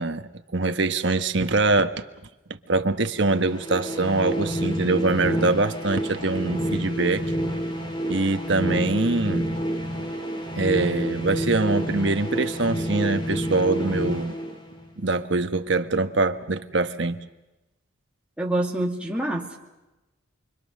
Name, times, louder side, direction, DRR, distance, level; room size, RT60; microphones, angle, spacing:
voice 1, 0.0-1.9 2.5-7.2 8.1-9.5 10.6-14.4 15.0-17.2, right 3 dB, 65° right, 1.3 m, -24 dB
sound 1, 3.2-15.1, equal, 25° left, 2.9 m, -29 dB
voice 2, 18.4-19.6, right 1 dB, 5° right, 2.4 m, -26 dB
29.0 x 23.5 x 6.5 m
head